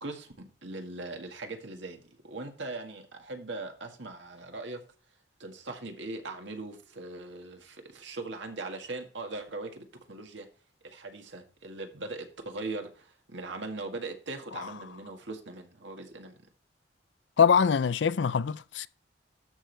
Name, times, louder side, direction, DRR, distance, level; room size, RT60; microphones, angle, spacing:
voice 1, 0.0-4.8 5.4-10.5 10.8-16.3, right 2 dB, 80° right, 1.8 m, -40 dB
voice 2, 17.4-18.9, left 6 dB, 80° left, 0.4 m, -23 dB
13.0 x 6.2 x 3.4 m
head